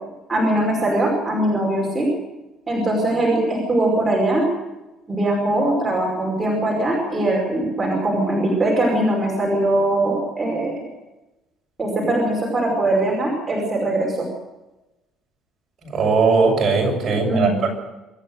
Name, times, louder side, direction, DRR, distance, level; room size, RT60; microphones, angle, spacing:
voice 1, 0.3-2.1 2.7-4.4 5.1-10.7 11.8-14.3 17.3-17.7, right 1 dB, 10° right, -3 dB, 5.3 m, -21 dB
voice 2, 15.8-17.7, right 4 dB, 30° right, 0 dB, 7.0 m, -19 dB
25.0 x 14.0 x 8.0 m, 1.0 s
cardioid pair, 175°, 0 cm